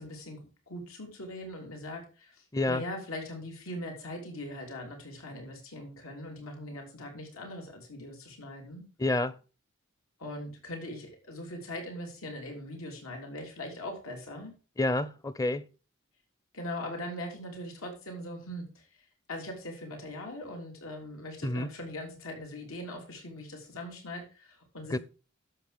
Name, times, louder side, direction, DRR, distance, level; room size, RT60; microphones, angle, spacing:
voice 1, 0.0-8.8 10.2-14.5 16.5-25.0, left 1 dB, 90° left, 3.3 m, -41 dB
voice 2, 9.0-9.3 14.8-15.6 21.4-21.7 24.9-25.0, left 2 dB, 15° left, 0.6 m, -28 dB
11.0 x 7.5 x 5.0 m
head